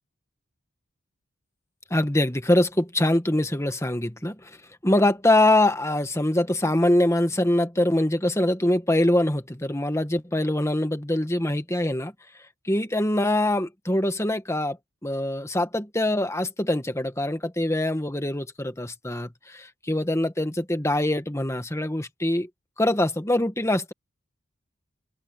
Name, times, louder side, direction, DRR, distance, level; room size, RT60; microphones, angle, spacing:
voice 1, 1.9-4.5 4.8-12.1 12.6-14.8 15.0-22.5 22.8-23.9, left 1 dB, 15° left, 1.7 m, -23 dB
open air
head